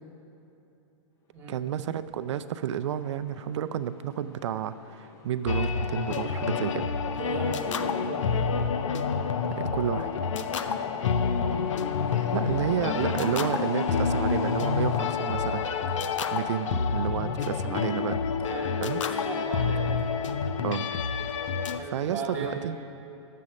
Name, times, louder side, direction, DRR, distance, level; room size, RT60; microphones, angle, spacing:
Train, 1.4-20.0, left 3 dB, 20° left, 0.6 m, -49 dB
voice 1, 1.5-6.9 9.6-10.1 12.3-15.7 15.9-16.0 16.3-18.2 18.8-19.0 20.6-20.9 21.9-22.7, right 9 dB, 70° right, 12 dB, 0.4 m, -31 dB
sound 1, 5.5-21.8, left 6 dB, 85° left, 0.6 m, -28 dB
voice 2, 7.2-8.4 10.6-10.9 18.5-20.1 21.8-22.6, right 3 dB, 15° right, -2 dB, 2.3 m, -37 dB
10.5 x 7.5 x 5.2 m, 2.8 s
hypercardioid pair, 150°, 16 cm